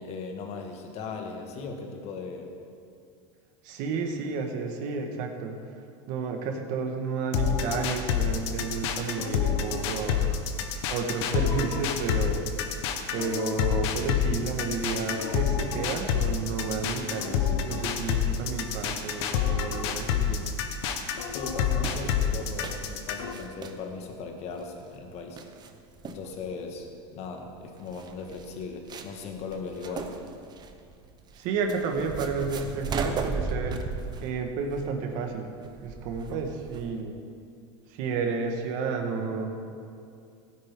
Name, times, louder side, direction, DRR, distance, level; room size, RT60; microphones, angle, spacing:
voice 1, 0.0-2.5 21.3-25.4 26.0-26.9 27.1-30.1, left 4 dB, 45° left, 3 dB, 1.7 m, -38 dB
voice 2, 3.6-5.6 6.1-10.3 10.9-12.4 13.1-20.6 31.3-33.9 34.2-35.5 35.8-37.2 37.9-39.6, right 4 dB, 60° right, 4 dB, 1.5 m, -31 dB
sound 1, 7.3-23.3, left 8 dB, 70° left, 1.1 m, -28 dB
sound 2, 20.2-37.0, right 4 dB, 30° right, 0.9 m, -38 dB
16.5 x 9.5 x 3.7 m, 2.4 s
supercardioid pair, 125°, 15 cm